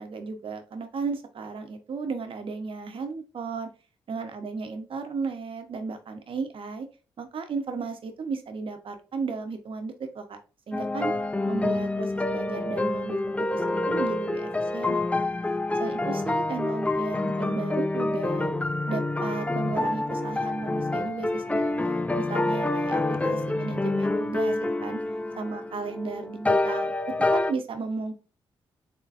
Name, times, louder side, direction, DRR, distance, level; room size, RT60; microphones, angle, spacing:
voice 1, 0.0-3.7 4.1-6.9 7.2-10.4 10.7-11.1 11.5-15.3 15.8-18.5 18.9-24.5 24.8-25.0 25.4-26.9 27.3-28.1, right 4 dB, 60° right, 7 dB, 1.0 m, -34 dB
sound 1, 10.7-27.5, left 2 dB, 15° left, 0.4 m, -27 dB
4.1 x 3.6 x 2.5 m, 0.33 s
supercardioid pair, 55°, 10 cm